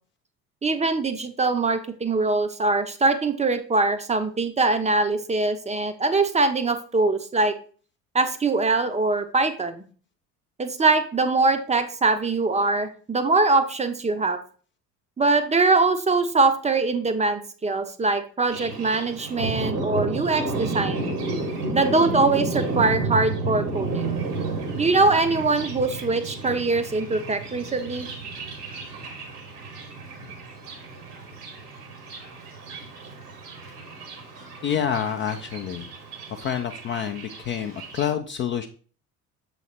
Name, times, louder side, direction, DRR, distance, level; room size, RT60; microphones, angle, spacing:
voice 1, 0.6-7.5 8.1-9.8 10.6-14.4 15.2-21.1 21.7-24.2 24.8-28.1, right 3 dB, 15° right, 9 dB, 0.6 m, -22 dB
Thunder, 18.5-38.0, right 3 dB, 75° right, 1.7 m, -32 dB
voice 2, 34.6-35.9 36.3-38.7, left 8 dB, 25° left, 6 dB, 0.4 m, -28 dB
7.0 x 3.2 x 4.2 m, 0.41 s
figure-of-eight pair, 60°, 46 cm